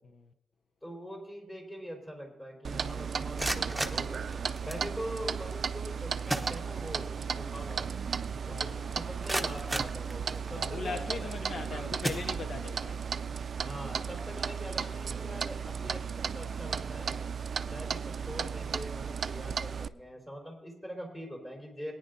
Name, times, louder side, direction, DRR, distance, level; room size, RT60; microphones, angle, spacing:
voice 1, 0.8-8.0 8.4-11.9 13.6-17.2 17.7-21.9, equal, 20° left, 4.3 m, -43 dB
Clock, 2.6-19.9, right 6 dB, 55° right, 0.4 m, -35 dB
sound 1, 3.3-4.9 5.9-6.0 6.3-7.2 7.5-7.6 8.2-8.3 8.8-10.7 11.3-11.5 12.0-12.8, right 1 dB, 5° right, 0.9 m, -36 dB
voice 2, 8.5-9.0 10.5-13.0 14.8-15.0, left 5 dB, 65° left, 0.6 m, -40 dB
21.5 x 9.9 x 2.7 m
wide cardioid pair, 115°, 0 cm